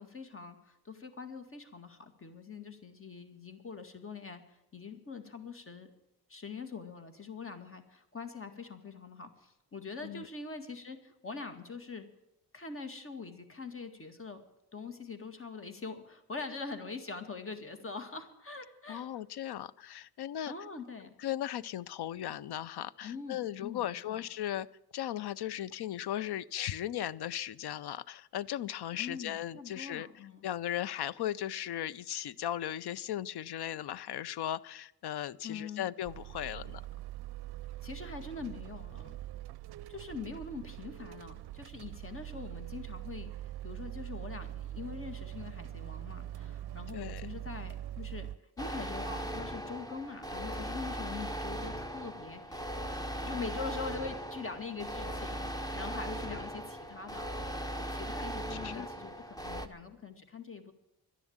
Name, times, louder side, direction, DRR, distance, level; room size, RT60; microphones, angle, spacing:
voice 1, 0.0-4.4 4.7-5.9 6.3-12.1 12.5-14.4 14.7-19.1 20.5-21.1 23.0-24.2 28.9-30.5 35.4-35.9 37.8-39.2 39.9-48.3 48.6-53.0 53.2-57.4 57.8-60.7, left 4 dB, 35° left, 8 dB, 1.9 m, -43 dB
voice 2, 18.9-20.5 21.2-24.7 24.9-30.1 30.4-36.8 46.9-47.3 56.3-56.5 58.6-58.9, left 12 dB, 75° left, 20 dB, 0.6 m, -37 dB
sound 1, 36.0-48.4, right 13 dB, 75° right, 0.5 m, -43 dB
sound 2, 48.6-59.7, right 1 dB, 10° left, 1.1 m, -38 dB
12.0 x 11.0 x 8.7 m, 0.90 s
wide cardioid pair, 115°, 39 cm